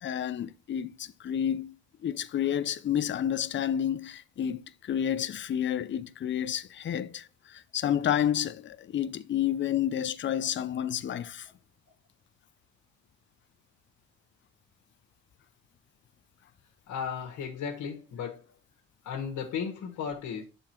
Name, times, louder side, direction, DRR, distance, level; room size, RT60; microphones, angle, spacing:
voice 1, 0.0-1.8 2.0-11.5, left 10 dB, 40° left, 0.5 m, -30 dB
voice 2, 16.9-18.4 19.0-20.4, left 7 dB, 75° left, 1.3 m, -35 dB
6.8 x 3.6 x 4.3 m
cardioid pair, 90°, 30 cm